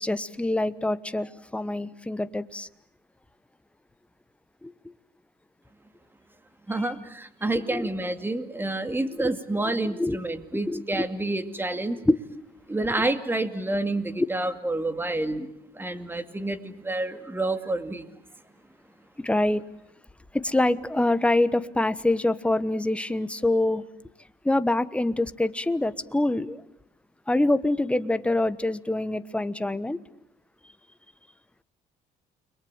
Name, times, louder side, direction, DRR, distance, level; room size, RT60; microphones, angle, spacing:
voice 1, 0.0-2.7 4.6-4.7 6.8-6.9 7.7-7.9 8.9-9.3 9.6-10.2 10.7-11.0 12.1-12.2 19.2-19.6 20.3-23.8 24.4-26.6 27.3-30.0, left 2 dB, 5° left, 1.1 m, -25 dB
voice 2, 6.7-12.0 12.7-18.1, right 2 dB, 10° right, 2.2 m, -29 dB
30.0 x 22.5 x 8.9 m
cardioid pair, 110°, 17 cm